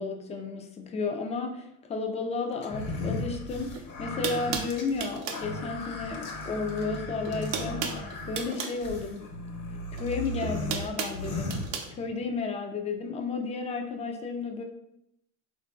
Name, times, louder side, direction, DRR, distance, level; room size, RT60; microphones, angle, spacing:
voice 1, 0.0-9.4 9.9-11.6 11.9-14.6, left 4 dB, 20° left, 4 dB, 0.3 m, -33 dB
sound 1, 2.6-12.3, left 2 dB, 55° left, 0.8 m, -36 dB
sound 2, 3.7-3.8 4.2-5.5 6.7-7.0 7.2-8.8 10.0-11.9, right 7 dB, 85° right, 0.6 m, -34 dB
3.7 x 2.5 x 2.3 m, 0.80 s
supercardioid pair, 95°, 39 cm